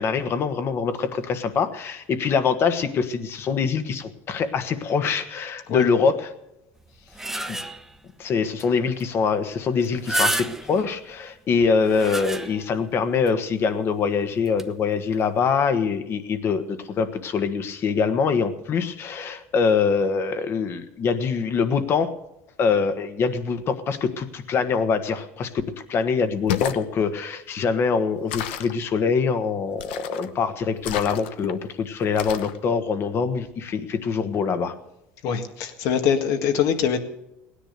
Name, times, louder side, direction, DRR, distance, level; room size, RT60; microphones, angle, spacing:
voice 1, 0.0-6.2 7.5-7.6 8.2-22.1 22.6-34.7, left 5 dB, 45° left, 10 dB, 1.5 m, -24 dB
sound 1, 6.8-8.0 8.6-8.7 9.0-9.1 9.8-10.9 11.6-12.8 13.3-13.4 14.4-14.6, right 1 dB, 5° right, 1.1 m, -29 dB
sound 2, 26.3-26.8 28.3-28.8 29.8-30.3 30.8-31.5 32.2-32.6, left 10 dB, 85° left, 0.9 m, -30 dB
voice 2, 35.2-37.0, left 7 dB, 65° left, 8 dB, 1.8 m, -23 dB
17.0 x 10.0 x 6.8 m, 0.88 s
supercardioid pair, 105°, 6 cm